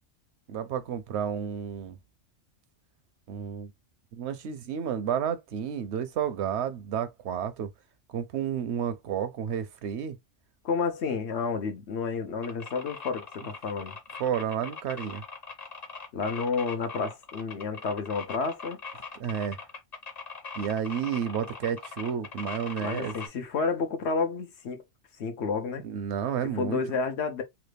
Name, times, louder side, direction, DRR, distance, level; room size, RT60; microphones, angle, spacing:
voice 1, 0.5-2.0 3.3-3.7 4.1-7.7 8.1-10.2 14.2-15.2 19.2-19.6 20.6-23.1 25.8-26.8, right 8 dB, 75° right, 0.8 m, -31 dB
voice 2, 10.6-14.0 16.1-18.8 22.8-24.8 25.2-25.8 26.5-27.4, left 4 dB, 70° left, 1.0 m, -30 dB
sound 1, 12.4-23.3, left 5 dB, 40° left, 1.0 m, -41 dB
3.1 x 2.4 x 3.2 m
omnidirectional pair, 1.2 m